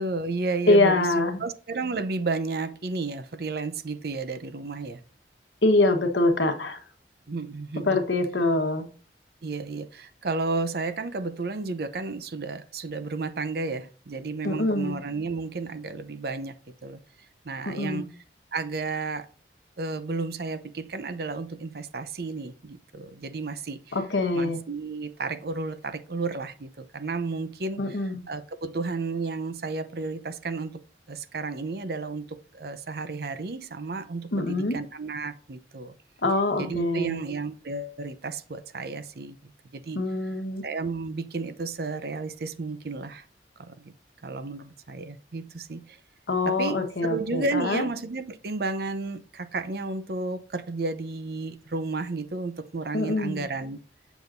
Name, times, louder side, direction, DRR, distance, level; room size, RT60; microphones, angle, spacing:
voice 1, 0.0-5.0 7.3-8.0 9.4-16.6 16.8-17.0 17.4-18.1 18.5-19.3 19.8-24.0 24.3-36.0 36.6-40.3 40.6-43.2 43.6-43.9 44.2-46.0 46.4-53.8, right 3 dB, 60° right, 0.6 m, -32 dB
voice 2, 0.7-1.4 5.6-6.8 7.9-8.9 14.4-14.9 17.7-18.0 23.9-24.6 27.8-28.2 34.3-34.8 36.2-37.2 39.9-40.6 46.3-47.8 52.9-53.4, left 2 dB, 90° left, 1.2 m, -24 dB
7.0 x 6.2 x 2.5 m
head